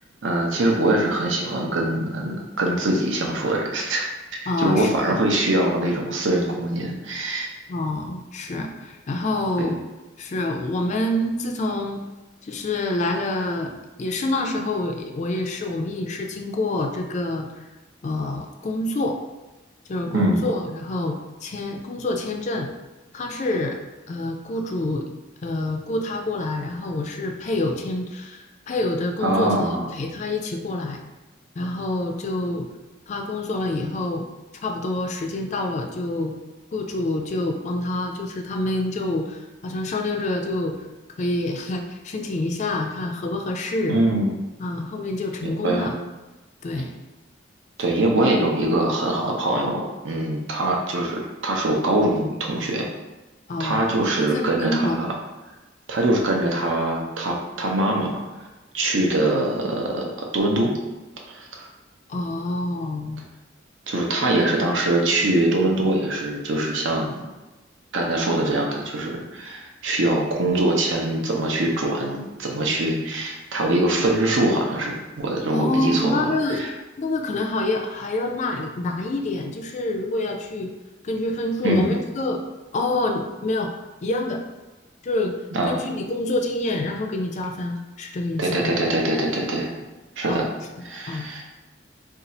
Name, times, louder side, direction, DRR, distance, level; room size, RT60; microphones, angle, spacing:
voice 1, 0.2-7.5 9.6-9.8 20.1-20.5 29.2-29.9 43.9-44.3 45.4-45.9 47.8-52.9 53.6-55.1 55.9-58.2 58.7-60.7 61.3-61.7 63.9-67.2 67.9-76.7 81.6-81.9 85.5-85.8 88.4-89.7 90.2-90.5 90.8-91.4, right 1 dB, 75° right, 0 dB, 0.6 m, -23 dB
voice 2, 4.5-5.2 7.7-9.8 10.2-12.0 12.4-13.7 14.0-17.6 18.0-19.2 19.9-22.7 23.1-23.8 24.1-25.1 25.4-31.0 31.6-32.7 33.1-34.3 34.6-36.3 36.7-40.8 41.2-44.0 44.6-45.9 46.6-46.9 53.5-53.9 54.2-55.1 62.1-63.2 64.2-64.5 75.5-76.7 77.0-80.7 81.0-82.4 82.7-83.7 84.0-84.4 85.0-85.4 85.7-88.7 90.3-90.5 91.1-91.3, left 2 dB, 35° left, 3 dB, 0.3 m, -27 dB
2.6 x 2.3 x 4.1 m, 1.1 s
head